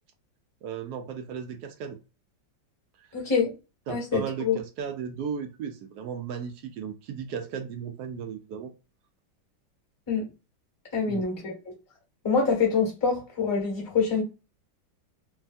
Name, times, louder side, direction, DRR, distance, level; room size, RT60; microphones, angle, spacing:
voice 1, 0.6-2.0 3.0-3.1 3.9-8.7 11.1-11.2, right 7 dB, 75° right, 0.9 m, -35 dB
voice 2, 3.1-3.6 3.9-4.6 10.1-10.3 10.9-11.5 12.2-14.2, left 5 dB, 15° left, 1.0 m, -25 dB
3.2 x 2.2 x 2.5 m
omnidirectional pair, 2.1 m